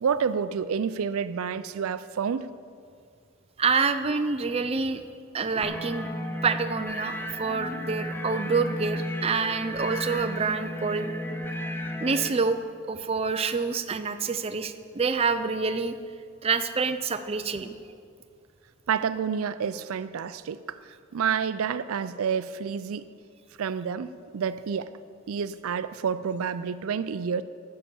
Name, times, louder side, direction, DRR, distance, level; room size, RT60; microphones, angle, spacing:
voice 1, 0.0-2.5 5.5-5.6 18.9-23.1 23.6-24.9 25.3-27.4, right 6 dB, 85° right, 14 dB, 0.4 m, -29 dB
voice 2, 3.6-5.0 5.3-6.1 6.4-11.1 12.0-12.6 12.9-15.9 16.4-17.7, right 4 dB, 30° right, 8 dB, 0.5 m, -27 dB
sound 1, 5.6-12.3, equal, 10° left, 0.7 m, -33 dB
11.0 x 7.3 x 7.0 m, 2.2 s
head